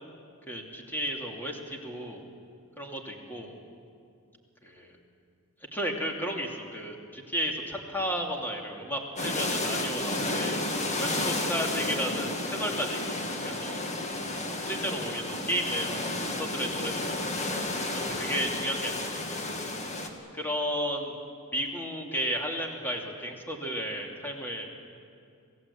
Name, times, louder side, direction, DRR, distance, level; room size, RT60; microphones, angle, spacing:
voice 1, 0.5-2.2 2.8-3.5 4.6-5.0 5.7-10.6 11.0-13.0 13.4-13.8 14.6-16.1 16.4-19.4 20.3-21.2 21.5-24.7, equal, 10° left, 1 dB, 2.8 m, -33 dB
sound 1, 9.2-20.1, left 2 dB, 35° left, 2.1 m, -32 dB
27.0 x 17.0 x 8.5 m, 2.4 s
head